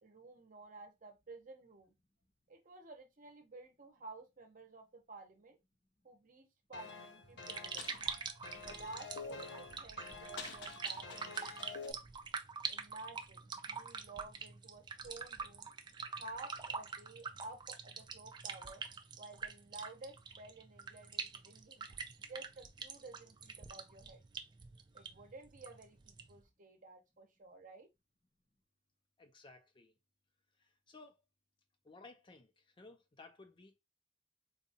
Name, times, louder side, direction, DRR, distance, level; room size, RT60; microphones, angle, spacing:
voice 1, 0.0-1.9 2.5-5.6 6.0-7.8 8.6-12.0 12.7-15.7 16.1-18.8 19.2-21.9 22.3-24.2 24.9-27.9, right 3 dB, 50° right, 0.8 m, -53 dB
sound 1, 6.7-11.9, left 4 dB, 70° left, 0.6 m, -48 dB
sound 2, 7.2-26.4, right 5 dB, 25° right, 0.4 m, -45 dB
voice 2, 29.2-30.0 30.6-31.2 31.8-33.8, left 3 dB, 30° left, 0.5 m, -58 dB
3.9 x 2.3 x 2.7 m
head